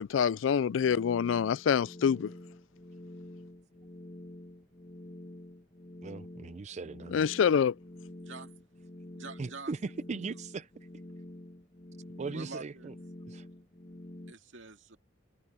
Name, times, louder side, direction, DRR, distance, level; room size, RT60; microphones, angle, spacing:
voice 1, 0.0-2.3 7.1-7.7, left 7 dB, 85° left, 0.4 m, -26 dB
sound 1, 1.7-14.3, left 1 dB, 35° left, 1.4 m, -48 dB
voice 2, 6.0-7.3 9.4-10.7 12.2-12.9 13.3-13.4, right 4 dB, 40° right, 0.4 m, -39 dB
voice 3, 8.2-8.5 9.1-9.7 10.3-10.4 12.3-12.9 14.3-15.0, right 3 dB, 85° right, 2.0 m, -46 dB
head